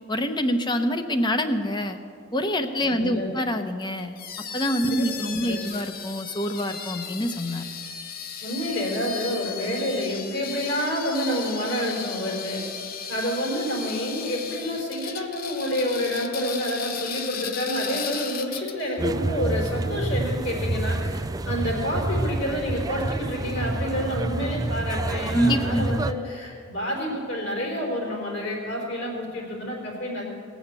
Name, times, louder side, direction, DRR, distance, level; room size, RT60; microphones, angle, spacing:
voice 1, 0.1-2.0 2.3-4.2 4.5-7.7 25.3-26.0, equal, 25° left, 8 dB, 0.8 m, -26 dB
voice 2, 2.9-3.3 4.9-5.1 5.4-5.6 8.4-12.6 13.1-30.2, equal, 65° left, -2 dB, 4.3 m, -28 dB
sound 1, 4.2-19.0, left 7 dB, 50° left, 0.8 m, -36 dB
sound 2, 19.0-26.1, right 2 dB, 20° right, 0.4 m, -28 dB
18.5 x 7.2 x 8.2 m, 2.3 s
head